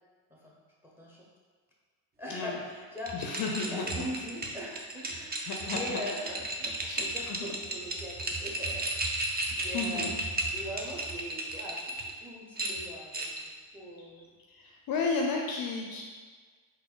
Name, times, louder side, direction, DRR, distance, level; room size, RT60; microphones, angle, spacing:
voice 1, 0.8-1.3 2.2-3.2 3.6-8.9 9.1-13.4 13.7-14.3, equal, 5° right, -3 dB, 0.8 m, -41 dB
voice 2, 2.3-2.6 3.1-4.0 5.4-6.0 6.9-7.6 9.5-10.1 14.5-16.0, left 4 dB, 45° left, 0 dB, 0.5 m, -33 dB
sound 1, 3.0-12.1 12.6-13.5, right 2 dB, 20° right, 0.4 m, -34 dB
3.9 x 2.7 x 3.8 m, 1.5 s
cardioid pair, 105°, 50 cm